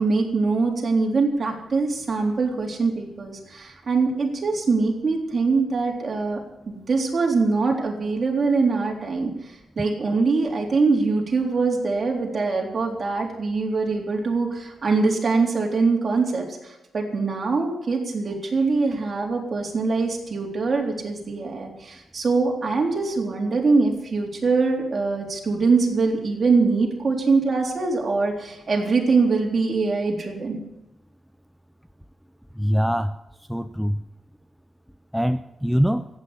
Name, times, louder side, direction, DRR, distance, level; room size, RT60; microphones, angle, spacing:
voice 1, 0.0-6.4 6.7-9.3 9.8-30.6, right 4 dB, 40° right, 0 dB, 3.8 m, -23 dB
voice 2, 32.6-33.1 33.5-34.0 35.1-36.1, equal, ahead, 9 dB, 0.5 m, -23 dB
14.5 x 9.3 x 9.9 m, 0.93 s
wide cardioid pair, 135°, 0 cm